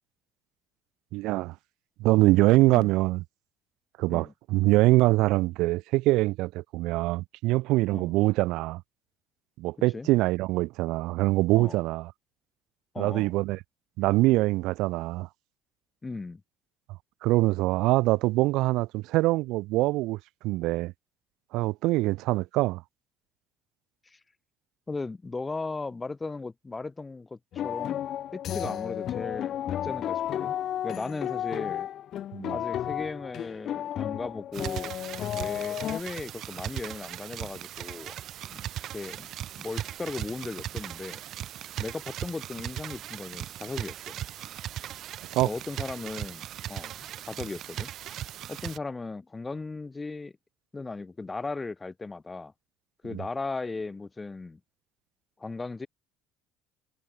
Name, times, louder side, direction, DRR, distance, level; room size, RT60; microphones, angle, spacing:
voice 1, 1.1-1.6 2.0-3.2 4.0-8.8 9.6-12.1 13.0-13.6 14.0-15.3 17.2-20.2 20.4-20.9 21.5-22.8 32.3-32.6 45.3-45.5 53.1-53.2, right 19 dB, 75° right, 1.7 m, -24 dB
voice 2, 12.9-13.3 16.0-16.4 24.1-24.2 24.9-28.0 28.3-30.5 30.8-31.9 32.5-34.9 35.3-38.1 38.5-38.6 38.9-39.3 39.6-41.2 41.8-44.2 45.4-47.9 48.5-50.3 50.7-52.5 53.0-54.6 55.4-55.9, left 3 dB, 15° left, 1.9 m, -37 dB
sound 1, 27.5-36.0, left 11 dB, 55° left, 0.6 m, -33 dB
sound 2, 34.5-48.8, right 12 dB, 55° right, 1.4 m, -38 dB
cardioid pair, 115°, 0 cm